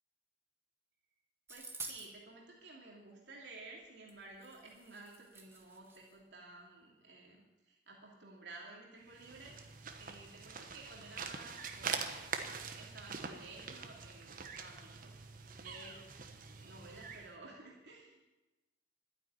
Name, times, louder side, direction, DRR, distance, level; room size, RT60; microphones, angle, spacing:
sound 1, 1.5-2.1 4.1-4.2 4.4-6.1, right 3 dB, 15° right, 1.9 m, -49 dB
voice 1, 1.5-9.6 10.0-15.2 15.6-16.1 16.5-18.2, right 2 dB, 70° right, -2 dB, 2.8 m, -54 dB
sound 2, 9.0-17.3, right 5 dB, 50° right, 1.2 m, -44 dB
12.0 x 9.8 x 9.7 m, 1.1 s
head